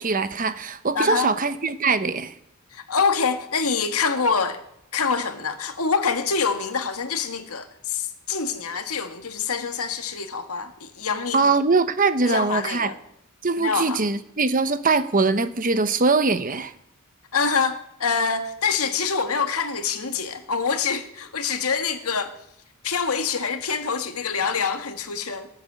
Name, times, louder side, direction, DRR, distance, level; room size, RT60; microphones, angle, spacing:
voice 1, 0.0-2.3 11.3-12.9 13.4-16.7, right 4 dB, 40° right, 0.9 m, -22 dB
voice 2, 0.9-1.3 2.7-4.6 4.9-11.5 12.2-13.0 13.6-14.0 17.3-22.4 22.8-25.5, left 5 dB, 85° left, 1.8 m, -25 dB
18.0 x 8.5 x 8.1 m
head